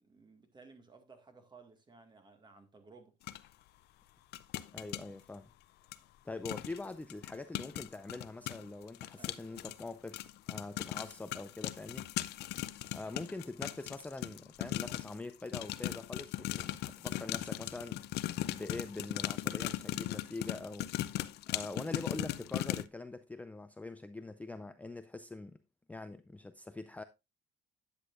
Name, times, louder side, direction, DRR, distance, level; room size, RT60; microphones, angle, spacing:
voice 1, 0.0-3.2 9.1-9.7, right 4 dB, 25° right, 1.9 m, -58 dB
sound 1, 3.3-3.4 4.3-5.0 5.9-6.0 6.5-6.8 7.1-15.2 15.5-22.9, left 14 dB, 75° left, 0.5 m, -38 dB
voice 2, 4.7-5.5 6.2-12.1 12.9-18.0 18.5-20.9 21.5-25.6 25.9-27.0, left 2 dB, 10° left, 0.4 m, -44 dB
10.0 x 8.2 x 2.5 m
cardioid pair, 110°, 17 cm